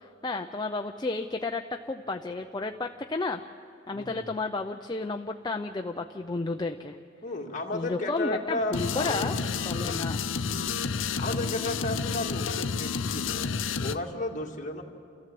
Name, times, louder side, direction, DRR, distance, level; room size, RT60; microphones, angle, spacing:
voice 1, 0.0-3.4 3.9-7.0 7.7-9.4 9.6-10.2, left 3 dB, 20° left, 4 dB, 0.5 m, -32 dB
voice 2, 3.9-4.3 7.2-9.8 10.5-13.4 13.8-14.8, left 2 dB, 40° left, 0 dB, 2.1 m, -34 dB
sound 1, 8.7-14.0, left 5 dB, 75° left, 0.7 m, -30 dB
29.5 x 14.5 x 7.7 m, 2.6 s
head